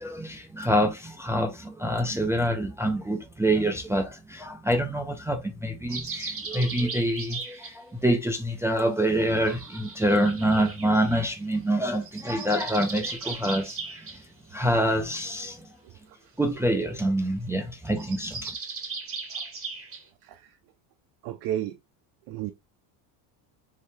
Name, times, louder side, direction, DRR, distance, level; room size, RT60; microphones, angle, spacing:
voice 1, 0.0-14.2 14.5-15.7 16.4-18.5, right 1 dB, 5° right, 0.4 m, -26 dB
sound 1, 5.9-7.7 9.4-11.3 11.9-14.2 17.9-20.0, right 4 dB, 30° right, 1.9 m, -37 dB
voice 2, 21.2-21.8 22.3-22.5, right 12 dB, 60° right, 0.5 m, -32 dB
3.2 x 2.8 x 3.1 m
cardioid pair, 120°, 44 cm